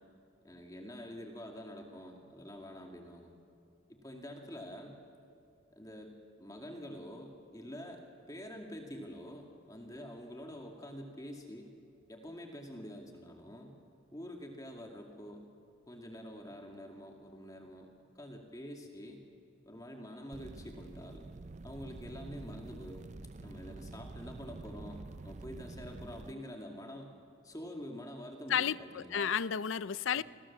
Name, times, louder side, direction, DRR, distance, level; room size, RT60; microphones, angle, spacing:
voice 1, 0.4-3.3 3.9-4.9 5.7-6.1 6.4-8.0 8.3-11.7 12.1-13.7 14.1-15.4 15.9-17.9 18.1-19.2 19.7-21.2 21.6-23.0 23.4-27.1 27.4-29.3 30.1-30.2, equal, 20° left, 2 dB, 2.4 m, -46 dB
sound 1, 20.3-26.3, right 2 dB, 35° right, 0.5 m, -47 dB
voice 2, 28.5-30.2, left 8 dB, 80° left, 17 dB, 0.5 m, -32 dB
30.0 x 22.5 x 7.4 m, 2.6 s
head